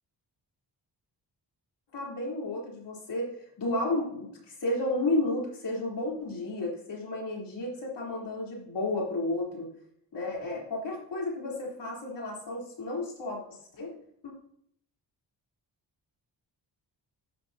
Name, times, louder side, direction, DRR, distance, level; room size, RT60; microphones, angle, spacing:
voice 1, 1.9-4.3 4.6-9.7 10.1-13.9 14.2-14.3, left 2 dB, 65° left, -3 dB, 3.7 m, -32 dB
13.0 x 10.5 x 2.8 m, 0.69 s
wide cardioid pair, 150°, 44 cm